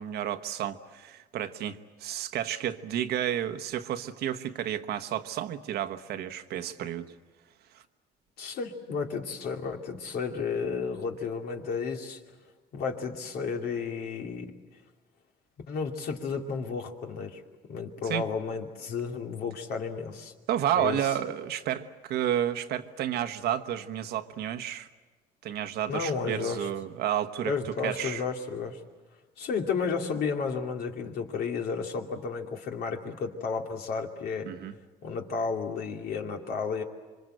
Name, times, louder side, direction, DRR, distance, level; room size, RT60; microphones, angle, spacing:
voice 1, 0.0-7.1 18.1-18.3 20.5-24.9 25.4-27.5 27.8-28.2 34.4-34.7, right 11 dB, 70° right, 9 dB, 1.3 m, -31 dB
voice 2, 8.4-12.2 12.7-14.5 15.7-17.4 17.7-20.3 20.8-21.1 25.9-26.7 27.4-28.8 29.4-34.5 35.0-36.8, left 5 dB, 65° left, 2 dB, 2.7 m, -32 dB
26.5 x 24.5 x 7.9 m, 1.3 s
cardioid pair, 110°, 17 cm